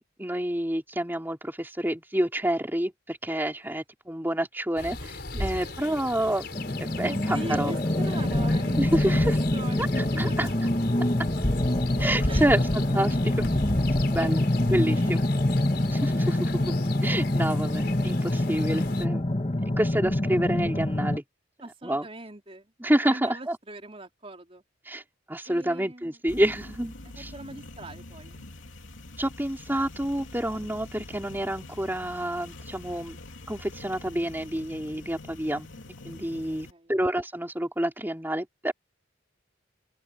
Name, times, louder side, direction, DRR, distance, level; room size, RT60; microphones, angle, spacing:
voice 1, 0.2-6.5 7.0-7.7 8.8-9.3 9.8-9.9 10.2-10.5 12.0-12.6 12.9-13.4 13.9-14.4 14.7-15.2 15.9-16.5 17.0-19.2 19.8-21.2 21.8-22.1 22.8-23.6 24.9-25.0 25.3-27.3 29.2-33.2 33.5-35.7 36.0-38.7, right 1 dB, 10° right, 2.8 m, -28 dB
sound 1, 4.8-19.1, left 1 dB, 55° left, 4.9 m, -35 dB
voice 2, 5.3-6.0 7.0-10.6 12.3-12.5 14.3-15.2 21.6-22.7 23.0-24.6 25.5-26.2 27.2-28.4 36.7-36.9, right 1 dB, 30° right, 4.1 m, -41 dB
sound 2, 6.5-21.2, left 1 dB, 30° left, 1.5 m, -26 dB
sound 3, 26.3-36.7, left 2 dB, 80° left, 2.9 m, -45 dB
open air
head